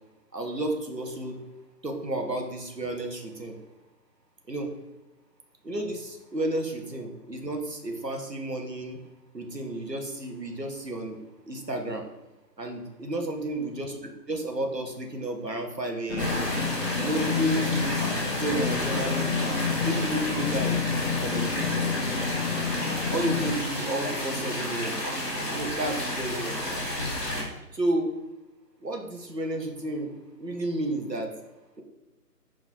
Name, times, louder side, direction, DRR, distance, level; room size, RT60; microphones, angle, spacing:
voice 1, 0.3-1.4 1.8-3.6 4.5-4.7 5.6-9.0 9.3-11.2 11.5-12.1 12.6-16.4 17.0-20.8 21.2-21.9 23.1-25.0 25.5-26.5 27.7-28.1 28.8-30.1 30.4-31.3, right 1 dB, 85° right, 3 dB, 1.7 m, -32 dB
sound 1, 16.1-23.6, left 5 dB, 45° left, 0.6 m, -29 dB
sound 2, 16.2-27.4, left 1 dB, 5° right, 1.2 m, -31 dB
5.5 x 5.1 x 4.5 m, 1.0 s
figure-of-eight pair, 155°, 48 cm